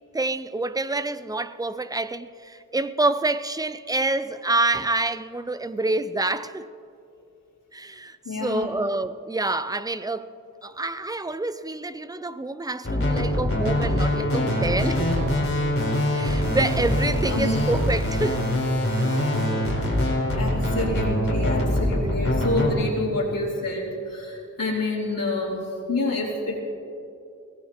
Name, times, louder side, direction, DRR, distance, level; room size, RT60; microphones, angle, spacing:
voice 1, 0.1-6.7 7.7-10.3 10.6-15.2 16.1-18.4, right 2 dB, 10° right, 0.4 m, -27 dB
voice 2, 8.2-8.7 17.0-17.7 20.3-26.6, left 2 dB, 85° left, 2.6 m, -28 dB
sound 1, 12.8-22.7, left 1 dB, 40° left, 3.9 m, -23 dB
23.0 x 17.5 x 2.9 m
wide cardioid pair, 85°, 33 cm